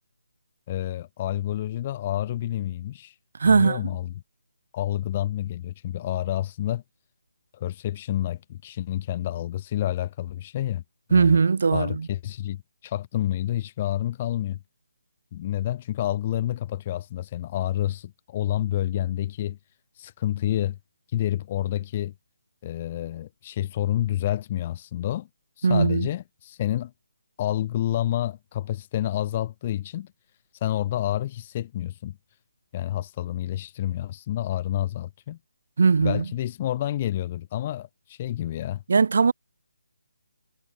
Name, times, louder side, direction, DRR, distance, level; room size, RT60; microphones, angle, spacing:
voice 1, 0.7-3.1 3.4-4.1 4.7-6.8 7.5-10.8 11.1-11.4 11.7-14.6 15.3-19.6 20.0-20.8 21.1-22.1 22.6-25.3 25.6-26.9 27.4-30.1 30.6-32.2 32.7-35.4 36.0-38.8, left 12 dB, 25° left, 0.6 m, -29 dB
voice 2, 3.4-3.9 11.1-12.1 25.6-26.1 35.8-36.2 38.9-39.3, right 5 dB, 60° right, 0.9 m, -19 dB
hypercardioid pair, 165°, 0 cm